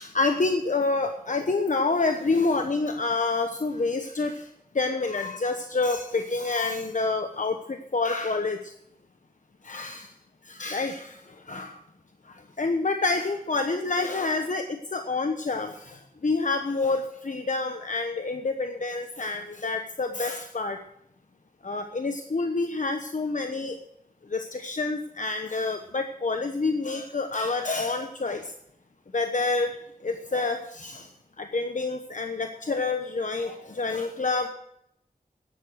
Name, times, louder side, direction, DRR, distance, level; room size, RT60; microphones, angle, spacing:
voice 1, 0.0-4.5 4.7-8.6 9.6-10.1 10.4-11.2 11.5-11.8 12.3-20.8 21.6-23.8 24.3-28.5 29.1-29.8 30.0-31.1 31.4-34.5, left 3 dB, 55° left, 6 dB, 1.1 m, -28 dB
13.0 x 10.0 x 6.3 m, 0.76 s
wide cardioid pair, 65°, 15 cm